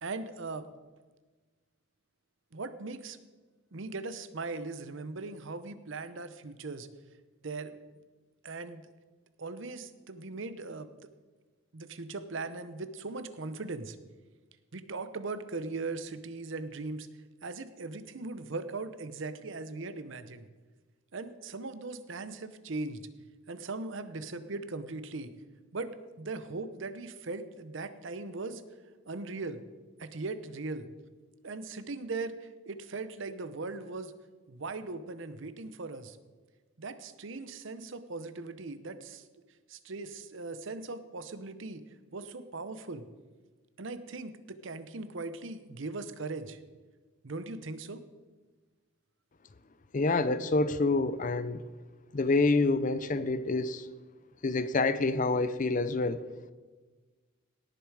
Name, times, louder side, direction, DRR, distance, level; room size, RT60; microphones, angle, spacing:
voice 1, 0.0-0.7 2.5-3.2 3.7-6.9 7.4-7.8 8.4-8.9 9.4-10.9 11.7-14.0 14.7-17.1 17.4-20.5 21.1-23.0 23.5-25.3 25.7-25.9 26.2-28.6 29.1-29.6 30.0-30.9 31.4-34.1 34.5-36.2 36.8-39.2 39.7-41.8 42.1-43.0 43.8-46.6 47.2-48.0, right 3 dB, 60° right, 12 dB, 0.7 m, -39 dB
voice 2, 49.9-51.6 52.1-53.9 54.4-56.2, left 3 dB, 40° left, 14 dB, 0.5 m, -27 dB
18.0 x 6.9 x 4.8 m, 1.3 s
head